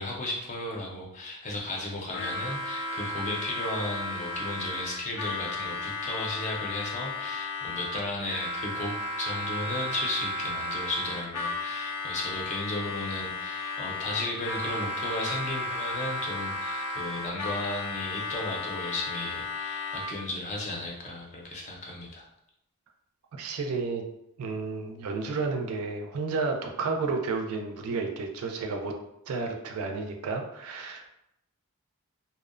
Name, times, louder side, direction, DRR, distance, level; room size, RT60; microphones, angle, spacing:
voice 1, 0.0-22.3, left 2 dB, 30° left, -1 dB, 0.5 m, -35 dB
Harmonica, 2.1-20.3, left 2 dB, 85° left, 0.4 m, -34 dB
voice 2, 23.3-24.0 24.4-28.9 29.3-31.1, right 4 dB, 75° right, 3 dB, 0.4 m, -31 dB
2.6 x 2.0 x 2.4 m, 0.81 s
head